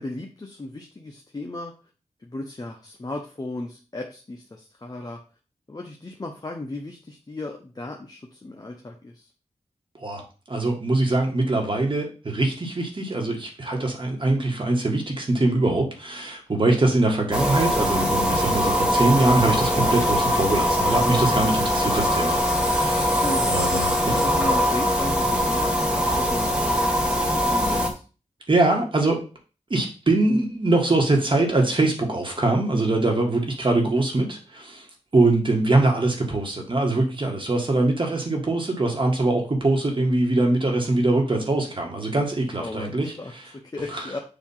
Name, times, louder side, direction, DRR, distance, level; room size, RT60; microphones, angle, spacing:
voice 1, 0.0-1.7 2.2-5.2 5.7-9.3 23.2-26.5 27.2-28.0 42.6-44.2, left 2 dB, 30° left, 1 dB, 0.8 m, -35 dB
voice 2, 10.5-22.4 22.6-23.2 23.5-23.9 28.5-29.2 29.7-34.9 35.1-43.4 43.9-44.0, right 2 dB, 45° right, 1 dB, 1.7 m, -23 dB
sound 1, 17.3-27.9, equal, 5° right, 1.3 m, -22 dB
7.0 x 2.9 x 5.6 m, 0.35 s
wide cardioid pair, 90°, 12 cm